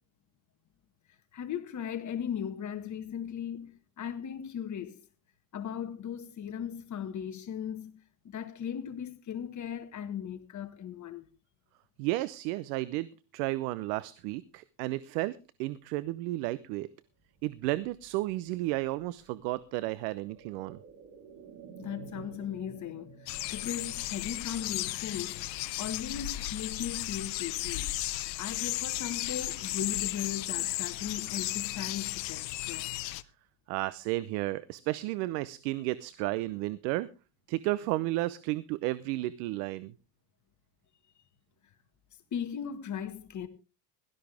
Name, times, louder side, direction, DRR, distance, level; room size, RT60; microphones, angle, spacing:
voice 1, 1.3-5.0 5.5-8.0 8.3-11.2 21.8-23.1 23.5-25.4 25.8-27.9 28.4-32.9 42.3-43.5, left 8 dB, 35° left, 1.7 m, -37 dB
voice 2, 12.0-13.1 13.3-16.9 17.4-20.8 33.7-37.1 37.5-39.9, right 18 dB, 70° right, 0.8 m, -32 dB
sound 1, 17.1-26.9 27.2-27.3, right 6 dB, 45° right, 3.4 m, -54 dB
sound 2, 23.3-33.2, left 17 dB, 90° left, 0.9 m, -35 dB
17.0 x 13.0 x 3.4 m
supercardioid pair, 105°, 49 cm